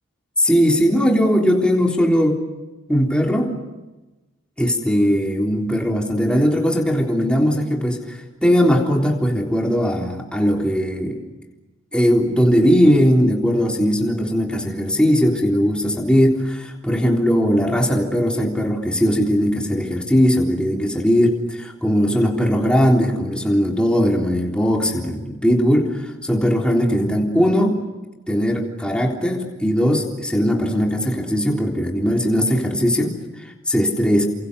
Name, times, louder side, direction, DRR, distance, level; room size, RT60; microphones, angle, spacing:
voice 1, 0.4-2.4 2.9-3.6 4.6-11.2 11.9-27.8 28.3-34.3, equal, 5° left, 0 dB, 3.6 m, -19 dB
30.0 x 27.0 x 6.9 m, 1.1 s
head